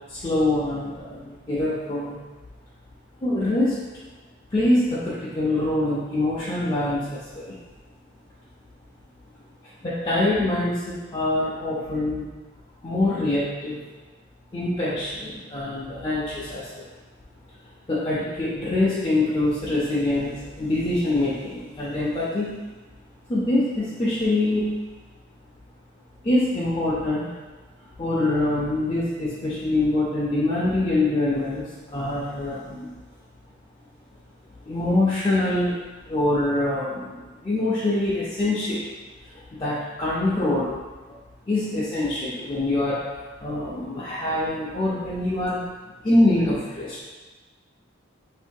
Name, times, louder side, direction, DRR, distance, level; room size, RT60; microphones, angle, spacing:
voice 1, 0.1-2.2 3.2-3.7 4.5-7.5 9.8-12.2 12.8-13.8 14.5-16.7 17.9-22.5 23.3-24.7 26.2-27.3 28.0-32.9 34.7-35.8 36.1-37.1 37.4-38.8 39.3-40.7 41.5-43.0 43.4-45.6 46.0-47.0, left 2 dB, 25° left, -10 dB, 0.5 m, -24 dB
3.6 x 2.6 x 2.2 m, 1.2 s
head